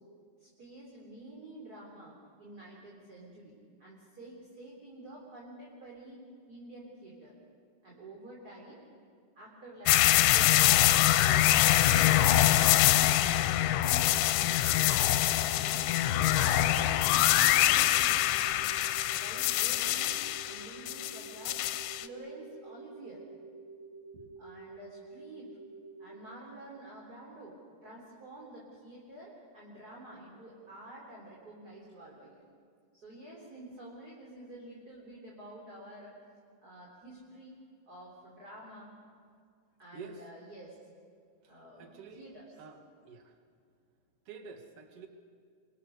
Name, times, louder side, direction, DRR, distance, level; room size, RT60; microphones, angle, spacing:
voice 1, 0.4-3.5 3.8-6.2 6.5-7.4 7.8-8.8 9.4-11.5 11.9-13.0 13.2-15.9 16.5-18.7 19.2-20.2 20.4-21.6 22.0-23.2 24.4-25.5 26.0-27.6 27.8-32.4 32.9-36.2 36.6-37.5 37.9-38.9 39.8-40.8 41.5-42.5, right 1 dB, 20° right, -3 dB, 3.7 m, -49 dB
sound 1, 9.9-22.1, left 14 dB, 80° left, 3.1 m, -24 dB
sound 2, 12.2-26.2, right 3 dB, 5° left, 6.3 m, -49 dB
voice 2, 41.8-42.3 42.6-42.8 43.0-43.3 44.3-45.1, right 5 dB, 45° right, 4 dB, 2.0 m, -47 dB
27.5 x 24.5 x 6.8 m, 2.2 s
omnidirectional pair, 5.3 m